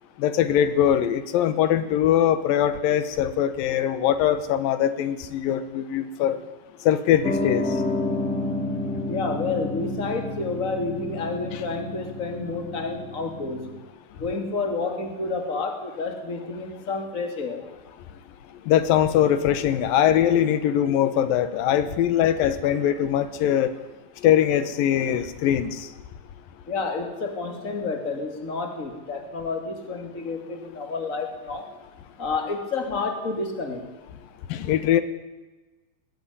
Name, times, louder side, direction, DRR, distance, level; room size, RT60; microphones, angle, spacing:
voice 1, 0.2-6.4 6.8-7.7 11.5-11.6 18.7-23.7 24.2-25.9 34.5-35.0, left 10 dB, 90° left, 12 dB, 3.0 m, -22 dB
Piano, 7.2-13.8, left 2 dB, ahead, 2.6 m, -30 dB
voice 2, 9.1-13.7 14.2-17.6 26.7-31.7 32.2-33.8, left 3 dB, 25° left, 5 dB, 3.0 m, -30 dB
21.0 x 16.0 x 9.9 m, 1.2 s
omnidirectional pair, 3.9 m